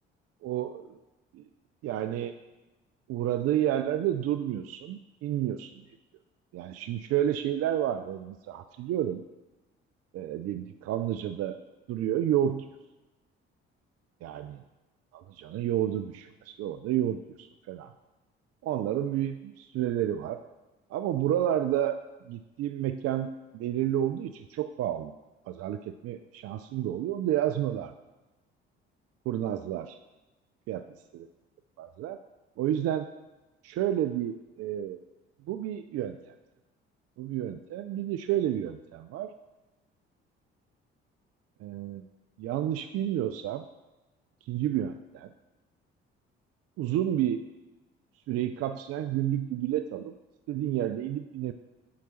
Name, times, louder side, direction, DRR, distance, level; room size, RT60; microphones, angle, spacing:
voice 1, 0.4-1.0 1.3-1.4 1.8-2.4 3.1-5.7 6.5-9.2 10.1-11.6 11.9-12.7 14.2-14.5 15.1-17.9 18.6-20.4 20.9-22.0 22.2-25.1 25.5-27.9 29.3-30.0 30.7-30.8 31.1-31.3 31.8-32.2 32.6-33.1 33.6-35.0 35.5-36.4 37.2-39.3 41.6-42.0 42.4-43.7 44.4-45.3 46.8-47.4 48.3-50.1 50.5-51.5, right 11 dB, 55° right, 9 dB, 0.4 m, -30 dB
5.9 x 4.7 x 5.8 m, 1.1 s
hypercardioid pair, 50°, 29 cm